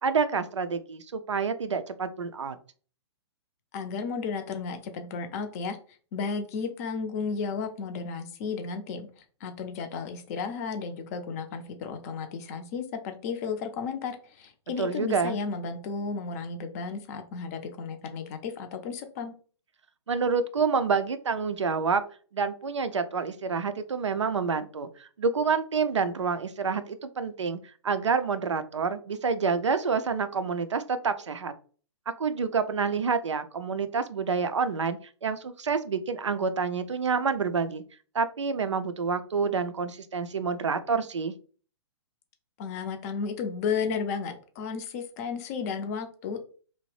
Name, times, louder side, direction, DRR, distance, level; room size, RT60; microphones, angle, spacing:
voice 1, 0.0-2.6 14.8-15.4 20.1-22.0 22.3-31.5 32.2-37.8 38.1-41.3, right 5 dB, 80° right, 11 dB, 0.4 m, -28 dB
voice 2, 3.7-5.8 6.1-9.1 9.4-19.3 42.6-46.4, left 5 dB, 35° left, 7 dB, 0.4 m, -33 dB
2.7 x 2.0 x 3.1 m, 0.41 s
figure-of-eight pair, 120°, 15 cm